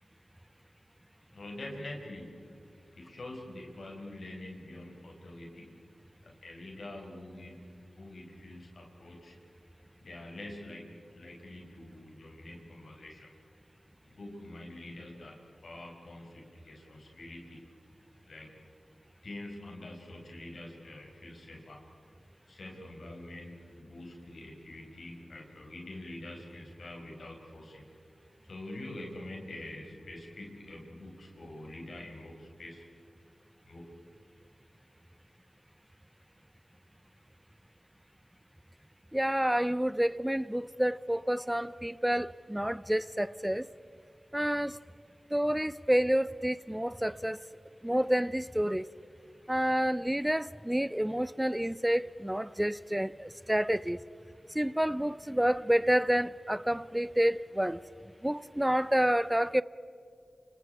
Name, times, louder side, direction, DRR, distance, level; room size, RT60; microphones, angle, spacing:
voice 1, 1.3-2.5 2.9-5.8 6.2-9.4 10.0-13.3 14.0-17.6 18.2-18.5 19.2-21.8 22.5-27.8 28.5-32.8 33.6-34.0, left 1 dB, 80° left, 5.8 m, -45 dB
voice 2, 39.1-43.7 44.3-44.8 45.3-47.4 47.8-48.9 49.5-54.0 54.5-57.8 58.2-59.6, equal, 10° right, 0.6 m, -29 dB
29.0 x 28.0 x 4.8 m
cardioid pair, 50°, 0 cm